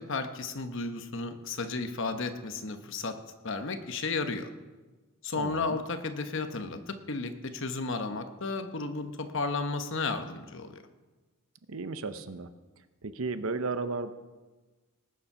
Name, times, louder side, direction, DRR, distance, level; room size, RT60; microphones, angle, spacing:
voice 1, 0.0-3.2 3.4-4.5 5.2-10.8, left 3 dB, 60° left, 8 dB, 1.0 m, -33 dB
voice 2, 5.4-5.8 11.7-12.5 13.0-14.1, right 3 dB, 70° right, 11 dB, 0.8 m, -34 dB
19.0 x 7.3 x 5.5 m, 1.2 s
head